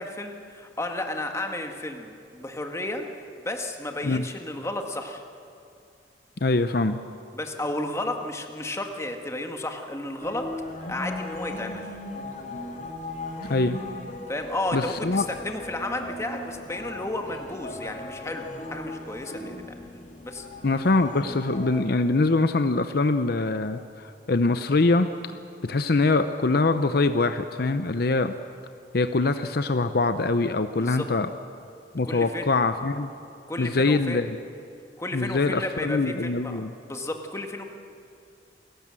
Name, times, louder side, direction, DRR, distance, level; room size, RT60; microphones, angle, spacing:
voice 1, 0.0-5.2 7.3-10.4 10.9-11.8 14.3-19.8 20.2-20.5 30.8-31.1 32.0-32.4 33.5-34.3 35.0-37.6, left 1 dB, 15° left, 4 dB, 1.7 m, -33 dB
voice 2, 6.4-7.0 13.5-13.8 14.7-15.2 20.6-25.1 25.6-28.3 28.9-31.3 31.9-33.1 33.6-34.4 35.1-36.7, left 3 dB, 60° left, 9 dB, 0.7 m, -23 dB
sound 1, 10.2-21.8, left 2 dB, 45° left, 2.5 m, -38 dB
28.5 x 17.0 x 7.7 m, 2.5 s
head